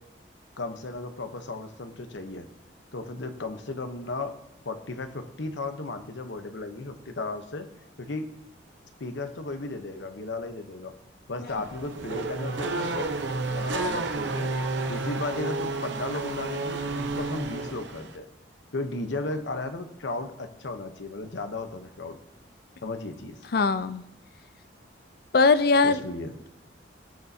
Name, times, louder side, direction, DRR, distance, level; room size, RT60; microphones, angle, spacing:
voice 1, 0.6-2.5 2.9-4.4 4.6-7.7 8.0-8.3 9.0-10.9 11.3-13.1 13.5-14.5 14.9-18.3 18.7-22.2 22.8-23.4 25.8-26.4, left 2 dB, 70° left, 8 dB, 0.9 m, -35 dB
Race car auto racing / Accelerating revving vroom, 11.5-18.2, right 3 dB, 70° right, 0.8 m, -31 dB
voice 2, 23.5-24.0 25.3-26.0, left 4 dB, 50° left, 13 dB, 0.4 m, -20 dB
18.0 x 6.7 x 2.8 m, 0.87 s
head